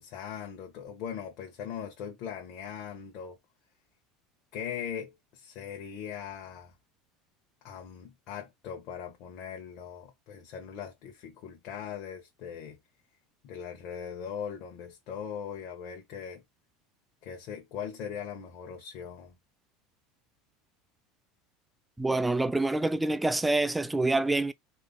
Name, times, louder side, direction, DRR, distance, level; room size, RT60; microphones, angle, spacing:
voice 1, 0.0-3.4 4.5-6.7 7.6-12.8 13.4-16.4 17.2-19.4, left 8 dB, 60° left, 1.1 m, -40 dB
voice 2, 22.0-24.5, right 2 dB, 10° right, 0.5 m, -26 dB
3.4 x 2.9 x 3.9 m
hypercardioid pair, 85°, 0 cm